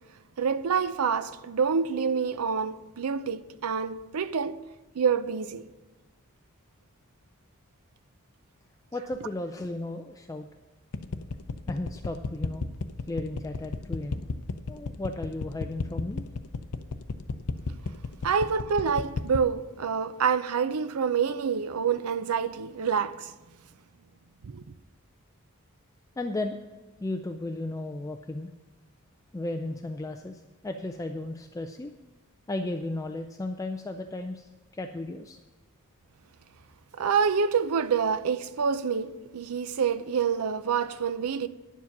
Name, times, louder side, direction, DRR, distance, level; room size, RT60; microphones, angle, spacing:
voice 1, 0.4-4.6 5.0-5.7 18.2-23.3 24.4-24.6 36.9-41.5, right 6 dB, 80° right, 0.5 m, -27 dB
voice 2, 8.9-10.5 11.7-12.6 13.1-14.2 14.7-16.3 26.2-26.6 27.0-28.5 29.3-31.9 32.5-35.4, left 2 dB, 15° left, 0.4 m, -34 dB
sound 1, 10.9-19.5, left 4 dB, 85° left, 0.6 m, -32 dB
10.5 x 7.3 x 5.9 m
head